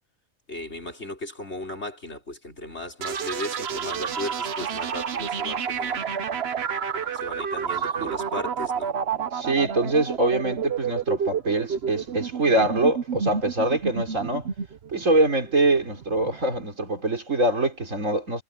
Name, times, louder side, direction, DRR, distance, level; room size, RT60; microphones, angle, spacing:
voice 1, 0.5-6.1 7.1-8.9, left 1 dB, 50° left, 5.6 m, -36 dB
sound 1, 3.0-16.6, right 7 dB, 55° right, 1.1 m, -30 dB
voice 2, 9.3-14.5 14.9-18.4, right 2 dB, 70° right, 4.4 m, -24 dB
omnidirectional pair, 1.4 m